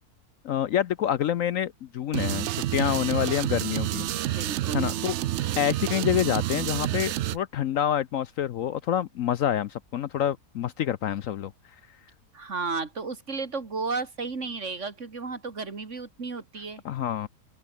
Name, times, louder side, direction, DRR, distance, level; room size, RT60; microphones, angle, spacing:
voice 1, 0.4-4.1 4.7-5.1 5.6-11.5 16.8-17.3, left 10 dB, 65° left, 0.9 m, -27 dB
sound 1, 2.1-7.4, right 13 dB, 75° right, 0.6 m, -29 dB
voice 2, 4.2-4.9 12.3-16.8, right 4 dB, 50° right, 2.6 m, -33 dB
open air
omnidirectional pair, 1.7 m